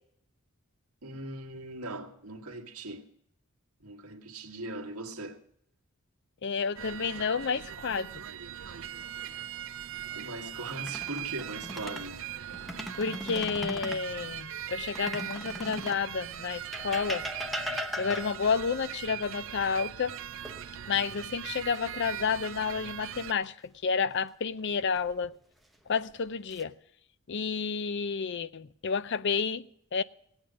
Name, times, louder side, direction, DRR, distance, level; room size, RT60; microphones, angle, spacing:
voice 1, 1.0-3.1 3.8-5.4 10.2-12.2, right 1 dB, 85° right, 1.6 m, -40 dB
voice 2, 6.4-8.2 13.0-17.2 18.0-20.1 20.9-25.3 25.9-26.7 27.3-30.0, left 5 dB, 55° left, 0.5 m, -30 dB
sound 1, 6.8-23.3, right 11 dB, 60° right, 0.6 m, -40 dB
sound 2, 10.7-12.1 12.5-14.1 14.9-16.1 16.7-18.5 20.4-21.1 21.5-21.8 24.7-25.3 26.0-26.6, equal, ahead, 0.8 m, -38 dB
17.5 x 8.9 x 6.2 m
head